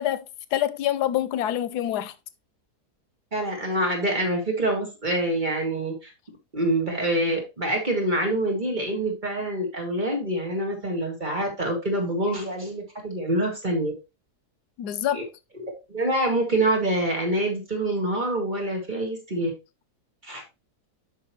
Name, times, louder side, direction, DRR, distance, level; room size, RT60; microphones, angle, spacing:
voice 1, 0.0-2.1 14.8-15.3, left 11 dB, 90° left, 1.2 m, -26 dB
voice 2, 3.3-6.1 6.5-13.9 15.1-15.2 15.6-19.5 20.2-20.4, right 1 dB, 30° right, 2.0 m, -26 dB
8.9 x 5.5 x 3.0 m
omnidirectional pair, 1.7 m